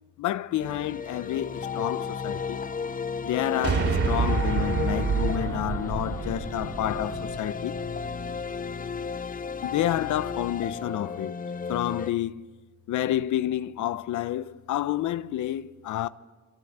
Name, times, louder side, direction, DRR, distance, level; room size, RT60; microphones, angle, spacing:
voice 1, 0.2-2.6 3.2-7.8 9.6-11.3 11.7-12.5 12.9-16.1, left 12 dB, 75° left, 0.9 m, -29 dB
sound 1, 0.6-12.1, left 5 dB, 30° left, 0.7 m, -34 dB
sound 2, 3.6-8.1, right 5 dB, 50° right, 4.0 m, -28 dB
29.5 x 23.5 x 8.0 m
cardioid pair, 90°, 30 cm